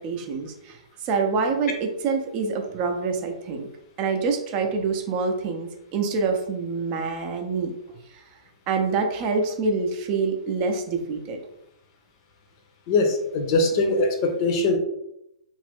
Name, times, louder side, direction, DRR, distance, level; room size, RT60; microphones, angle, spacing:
voice 1, 0.0-3.7 4.0-8.0 8.7-11.4, right 4 dB, 35° right, 4 dB, 0.5 m, -26 dB
voice 2, 12.9-14.8, left 3 dB, 40° left, 5 dB, 0.6 m, -22 dB
2.8 x 2.5 x 3.3 m, 0.82 s
figure-of-eight pair, 120°, 4 cm